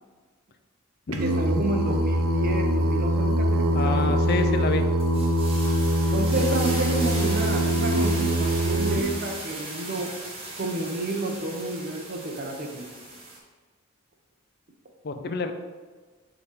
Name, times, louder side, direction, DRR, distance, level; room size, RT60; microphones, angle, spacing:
Singing, 1.1-9.0, right 1 dB, 80° right, 0.7 m, -23 dB
voice 1, 1.2-4.1 6.1-10.1 10.6-12.9, right 2 dB, 40° right, 2 dB, 0.7 m, -30 dB
voice 2, 3.7-5.4 15.0-15.5, left 3 dB, 45° left, 7 dB, 0.5 m, -29 dB
sound 1, 5.0-13.4, right 2 dB, 25° right, 1.2 m, -37 dB
6.6 x 3.8 x 4.0 m, 1.4 s
head